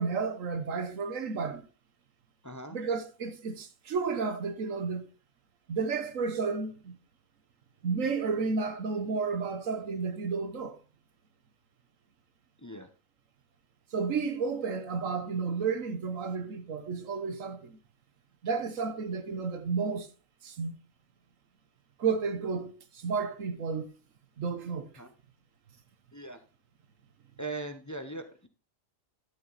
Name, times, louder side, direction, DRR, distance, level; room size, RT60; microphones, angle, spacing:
voice 1, 0.0-1.7 2.7-5.1 5.7-7.0 7.8-10.8 13.9-17.8 18.4-20.1 20.4-20.8 22.0-23.9 24.4-24.9, right 5 dB, 75° right, 1.4 m, -32 dB
voice 2, 2.4-2.8 12.6-12.9 25.0-25.1 26.1-26.4 27.4-28.5, right 2 dB, 15° left, 0.8 m, -40 dB
11.5 x 7.1 x 4.0 m
omnidirectional pair, 1.4 m